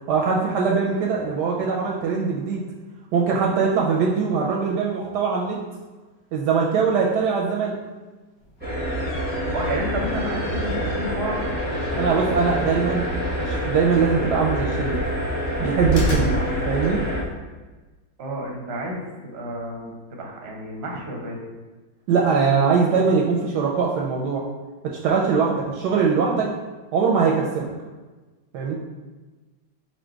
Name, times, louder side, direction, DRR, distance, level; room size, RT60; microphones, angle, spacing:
voice 1, 0.1-2.6 3.1-5.6 6.3-7.8 12.0-13.0 13.4-14.9 15.6-16.3 16.6-17.0 22.1-24.4 24.8-26.5 26.9-27.7 28.5-28.7, right 5 dB, 75° right, -1 dB, 1.0 m, -21 dB
sound 1, 8.4-17.3, equal, 55° left, 1.2 m, -33 dB
sound 2, 8.6-17.2, equal, 10° right, 0.7 m, -27 dB
voice 2, 9.5-11.4 11.7-12.4 18.2-19.9 20.2-21.4, right 1 dB, 55° right, -1 dB, 0.7 m, -31 dB
4.4 x 2.5 x 4.5 m, 1.2 s
omnidirectional pair, 2.1 m